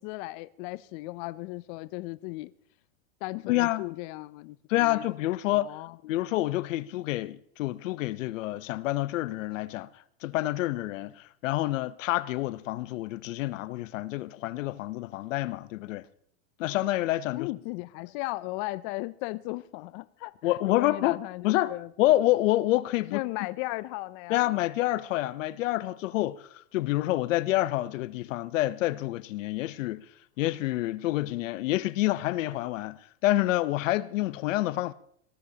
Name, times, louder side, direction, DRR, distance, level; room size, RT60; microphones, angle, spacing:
voice 1, 0.0-2.5 3.2-5.0 5.5-6.0 17.3-21.9 23.1-24.6, left 21 dB, 40° left, 0.5 m, -36 dB
voice 2, 3.4-3.8 4.7-5.7 6.1-9.9 10.2-16.0 16.6-17.5 20.4-21.2 21.4-21.7 22.0-23.2 24.3-30.0 30.4-34.9, left 16 dB, 70° left, 0.8 m, -28 dB
22.5 x 18.0 x 2.9 m
hypercardioid pair, 125°, 40 cm